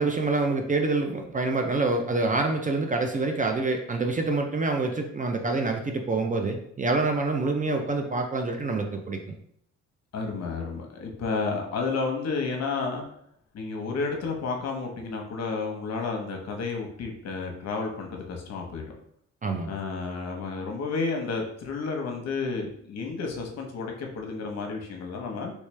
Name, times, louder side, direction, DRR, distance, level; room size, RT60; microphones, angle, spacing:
voice 1, 0.0-9.3 19.4-19.7, right 3 dB, 25° right, 4 dB, 0.5 m, -26 dB
voice 2, 10.1-13.0 13.5-19.0 19.7-25.5, left 4 dB, 60° left, 2 dB, 0.9 m, -31 dB
3.2 x 3.1 x 3.2 m, 0.69 s
cardioid pair, 90°, 30 cm